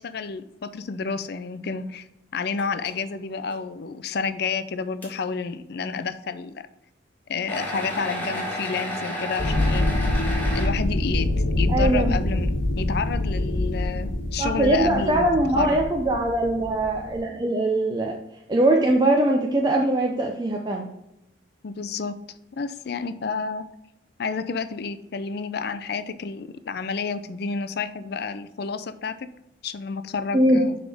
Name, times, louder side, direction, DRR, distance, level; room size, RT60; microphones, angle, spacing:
voice 1, 0.0-2.1 2.3-6.7 7.3-9.9 10.5-11.3 11.6-15.8 21.6-22.2 22.5-23.7 24.2-29.3 29.6-30.8, left 5 dB, 55° left, 12 dB, 0.5 m, -30 dB
sound 1, 2.6-3.0 3.4-3.5 4.2-4.3 5.0-5.1 7.5-10.7, left 1 dB, 10° left, 1.4 m, -31 dB
sound 2, 9.4-17.2, left 1 dB, 85° left, 1.4 m, -25 dB
voice 2, 11.7-12.1 14.4-18.1 18.5-20.9 30.3-30.6, right 1 dB, 25° right, 0 dB, 0.6 m, -21 dB
9.9 x 3.6 x 3.5 m, 0.86 s
head